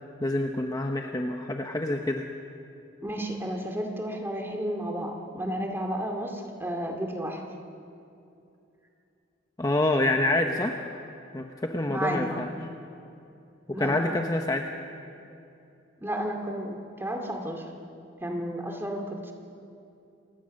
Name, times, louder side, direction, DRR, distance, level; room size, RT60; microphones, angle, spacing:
voice 1, 0.2-2.3 9.6-10.8 11.3-12.5 13.8-14.6, left 1 dB, 20° left, 3 dB, 0.8 m, -27 dB
voice 2, 3.0-7.4 11.9-12.5 13.7-14.2 16.0-17.7 18.2-19.3, equal, 10° right, 2 dB, 2.2 m, -32 dB
28.0 x 16.5 x 6.5 m, 2.7 s
head